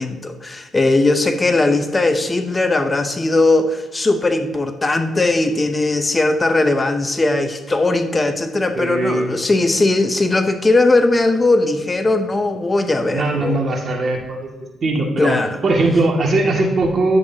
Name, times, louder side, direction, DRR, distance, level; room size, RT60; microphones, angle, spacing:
voice 1, 0.0-13.6 15.2-15.6, left 2 dB, 25° left, 7 dB, 0.7 m, -18 dB
voice 2, 8.8-9.3 13.1-14.5 14.8-15.3 15.6-17.2, right 2 dB, 45° right, 0 dB, 2.1 m, -19 dB
10.5 x 8.4 x 2.8 m, 1.2 s
cardioid pair, 90°, 0 cm